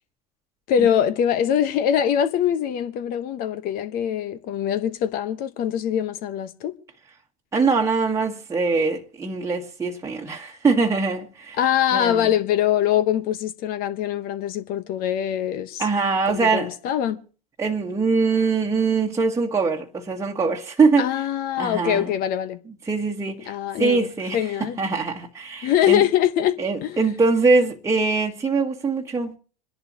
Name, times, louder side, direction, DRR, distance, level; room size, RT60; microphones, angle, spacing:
voice 1, 0.7-6.7 11.6-15.9 16.3-17.2 21.0-22.6 23.4-24.1 24.3-24.8 25.6-27.0, left 10 dB, 45° left, 1.1 m, -23 dB
voice 2, 7.5-11.6 11.9-12.3 15.8-16.7 17.6-21.1 21.6-22.1 22.8-24.4 24.8-26.0 26.6-29.4, right 4 dB, 15° right, 1.5 m, -22 dB
27.0 x 11.0 x 3.0 m
figure-of-eight pair, 85°, 21 cm